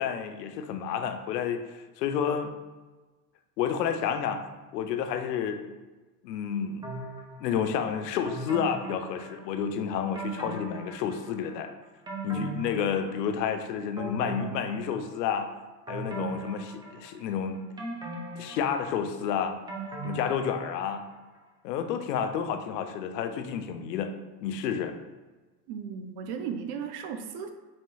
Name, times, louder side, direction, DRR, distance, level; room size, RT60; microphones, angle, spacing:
voice 1, 0.0-2.5 3.6-4.4 4.7-5.6 6.2-6.9 7.4-11.7 12.2-15.5 15.9-17.6 18.4-19.6 20.0-21.0 21.6-24.1 24.4-24.9, left 7 dB, 85° left, 7 dB, 0.6 m, -30 dB
sound 1, 6.8-7.6 8.2-9.7 10.2-11.5 11.8-13.5 14.0-15.3 15.9-17.3 17.8-21.0 21.4-21.5, right 2 dB, 10° right, 0.4 m, -39 dB
voice 2, 25.7-27.5, right 7 dB, 55° right, 6 dB, 0.6 m, -35 dB
4.1 x 2.9 x 2.3 m, 1.2 s
hypercardioid pair, 90°, 48 cm